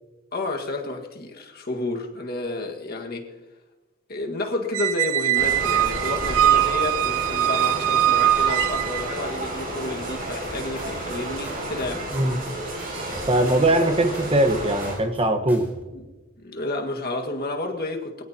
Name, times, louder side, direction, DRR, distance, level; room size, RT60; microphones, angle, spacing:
voice 1, 0.3-3.3 4.1-12.1 15.9-16.0 16.4-18.2, left 2 dB, 45° left, 2 dB, 1.8 m, -30 dB
Squeak, 4.7-9.2, right 12 dB, 80° right, 0.5 m, -22 dB
sound 1, 5.3-15.0, right 1 dB, 45° right, 6.4 m, -32 dB
sound 2, 10.4-11.2 11.4-12.5 12.8-13.9 14.1-15.2 15.5-15.8, equal, 10° right, 3.8 m, -45 dB
voice 2, 13.3-15.7, right 1 dB, 25° right, 7 dB, 1.3 m, -21 dB
22.5 x 16.5 x 2.9 m, 1.2 s
head